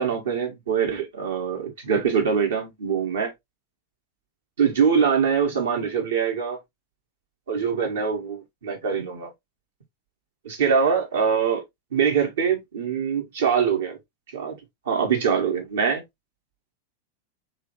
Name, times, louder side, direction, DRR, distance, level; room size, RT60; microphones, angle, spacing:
voice 1, 0.0-3.3 4.6-6.6 7.5-9.3 10.4-11.6 11.9-14.0 14.3-14.5 14.8-16.0, right 6 dB, 60° right, 1.5 m, -23 dB
3.6 x 3.3 x 3.0 m
figure-of-eight pair, 90°, 0 cm